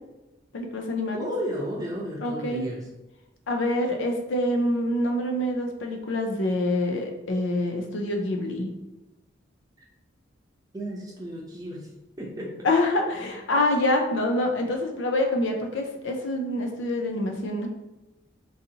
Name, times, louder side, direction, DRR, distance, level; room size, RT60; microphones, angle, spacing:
voice 1, 0.5-1.3 2.2-2.7 3.5-8.7 12.6-17.7, left 1 dB, 75° left, 3 dB, 0.6 m, -26 dB
voice 2, 1.1-2.8 10.7-11.9 12.2-12.7, equal, 20° right, -2 dB, 0.6 m, -33 dB
3.9 x 2.6 x 2.8 m, 1.0 s
head